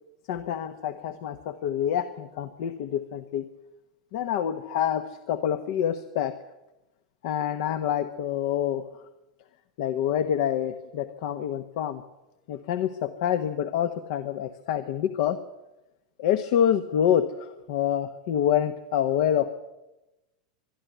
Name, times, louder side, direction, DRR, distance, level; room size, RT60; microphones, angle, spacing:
voice 1, 0.3-3.4 4.1-6.3 7.2-8.8 9.8-12.0 12.5-15.4 16.2-19.5, left 10 dB, 65° left, 10 dB, 1.2 m, -27 dB
23.0 x 12.0 x 9.3 m, 1.0 s
hypercardioid pair, 110°, 3 cm